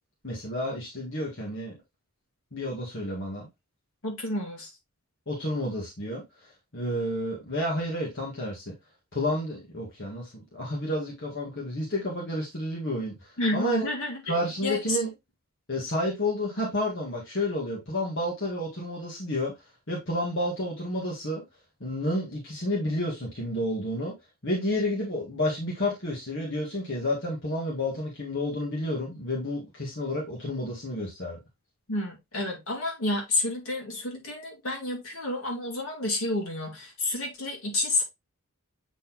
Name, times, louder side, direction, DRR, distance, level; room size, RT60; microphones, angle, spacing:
voice 1, 0.2-1.8 2.5-3.5 5.3-8.7 9.1-13.9 14.2-15.1 15.7-19.5 19.9-21.4 21.8-24.1 24.4-31.4, left 1 dB, 55° left, 1.9 m, -30 dB
voice 2, 4.0-4.7 13.4-14.2 14.6-15.0 31.9-38.0, left 2 dB, 75° left, 2.5 m, -30 dB
8.1 x 4.1 x 3.0 m
head